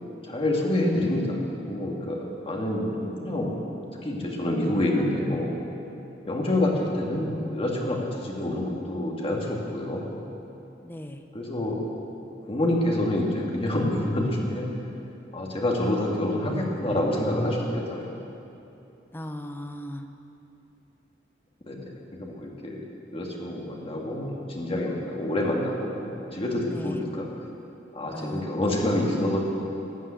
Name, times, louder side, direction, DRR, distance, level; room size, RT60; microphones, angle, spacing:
voice 1, 0.3-1.4 1.7-3.6 4.0-5.5 6.3-10.2 11.3-11.8 12.5-14.7 15.3-18.1 21.7-21.8 22.1-22.8 23.1-27.3 27.9-29.4, left 1 dB, 30° left, -1 dB, 2.1 m, -27 dB
voice 2, 10.8-11.2 19.1-20.1 26.7-27.0 28.1-28.5, equal, 10° left, 6 dB, 0.7 m, -37 dB
13.5 x 9.2 x 8.7 m, 2.9 s
head